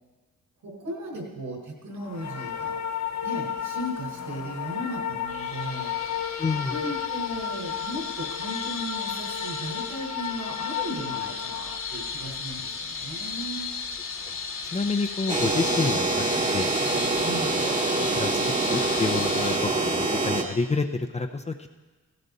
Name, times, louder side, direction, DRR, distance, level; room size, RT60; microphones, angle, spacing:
voice 1, 0.6-2.8 3.2-5.9 6.7-13.7 17.2-17.5, right 1 dB, 65° right, -1 dB, 4.6 m, -36 dB
sound 1, 2.0-17.0 17.3-17.7, left 9 dB, 55° left, 0.9 m, -34 dB
sound 2, 5.3-19.6, left 5 dB, 40° left, 1.4 m, -36 dB
voice 2, 6.4-6.7 14.3-14.4 14.7-16.7 17.4-21.7, left 4 dB, 20° left, 5 dB, 0.6 m, -29 dB
sound 3, 15.3-20.4, right 2 dB, 25° right, 1.3 m, -25 dB
16.5 x 16.0 x 4.1 m, 1.3 s
wide cardioid pair, 120°, 32 cm